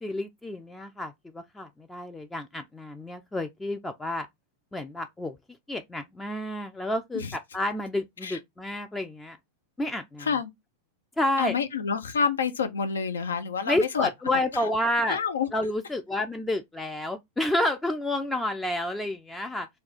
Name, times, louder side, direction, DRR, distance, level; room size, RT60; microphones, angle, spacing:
voice 1, 0.0-4.3 4.7-5.4 5.7-9.4 9.8-10.3 11.2-11.6 13.7-15.2 15.5-19.7, left 1 dB, 10° left, 0.4 m, -30 dB
voice 2, 10.2-10.5 11.4-14.1 15.1-15.5, left 6 dB, 70° left, 0.6 m, -28 dB
3.3 x 2.3 x 4.0 m
figure-of-eight pair, 90°, 0 cm